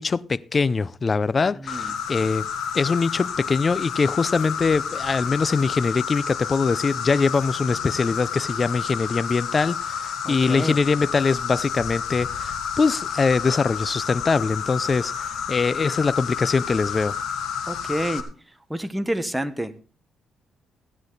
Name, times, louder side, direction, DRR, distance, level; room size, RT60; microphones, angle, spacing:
voice 1, 0.0-2.5 2.7-17.2, left 4 dB, 35° left, 0.5 m, -23 dB
voice 2, 1.6-1.9 10.2-10.8 17.7-18.3 18.7-19.8, right 1 dB, 5° right, 1.3 m, -28 dB
Insect, 1.7-18.2, left 7 dB, 75° left, 1.9 m, -30 dB
15.5 x 9.9 x 4.0 m
cardioid pair, 90°, 0 cm